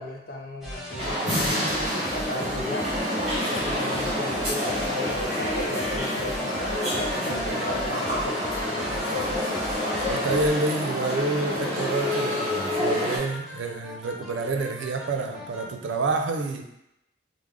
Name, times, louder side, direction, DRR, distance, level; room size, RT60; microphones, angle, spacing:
voice 1, 0.0-2.9 3.4-9.3, left 1 dB, 55° left, 0 dB, 0.6 m, -35 dB
sound 1, 0.6-15.7, left 1 dB, ahead, 0.6 m, -37 dB
sound 2, 1.0-13.2, left 1 dB, 35° right, 1.3 m, -28 dB
voice 2, 10.1-16.7, right 3 dB, 85° right, 4 dB, 0.4 m, -28 dB
3.3 x 2.1 x 3.6 m, 0.85 s
head